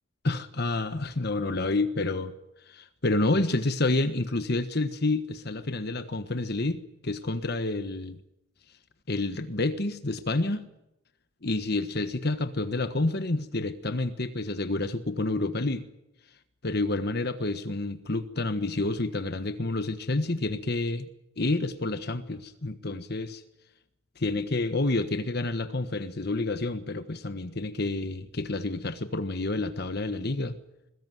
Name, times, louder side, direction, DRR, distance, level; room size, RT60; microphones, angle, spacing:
voice 1, 0.2-2.3 2.7-8.2 9.1-10.6 11.4-15.8 16.6-21.1 21.4-23.4 24.2-30.5, left 2 dB, 50° left, 10 dB, 1.3 m, -29 dB
22.5 x 20.0 x 9.3 m, 0.86 s
head